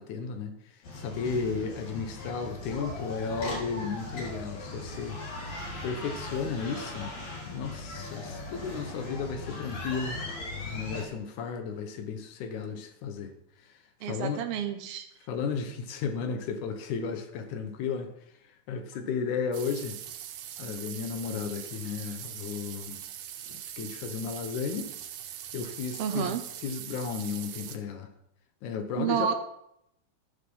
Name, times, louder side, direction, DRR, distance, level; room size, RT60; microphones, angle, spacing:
voice 1, 0.0-5.2 5.8-7.1 7.5-10.2 10.7-13.3 13.6-14.4 15.3-18.1 18.7-20.0 20.6-23.0 23.5-24.9 25.5-26.4 26.6-28.1 28.6-29.3, left 5 dB, 80° left, 7 dB, 2.4 m, -34 dB
sound 1, 0.8-11.0, left 2 dB, 60° left, 3.3 m, -39 dB
voice 2, 14.0-15.1 26.0-26.4 29.0-29.3, right 8 dB, 70° right, 6 dB, 1.5 m, -30 dB
sound 2, 19.5-27.8, right 10 dB, 90° right, 2.4 m, -42 dB
13.0 x 6.8 x 5.4 m, 0.77 s
omnidirectional pair, 3.5 m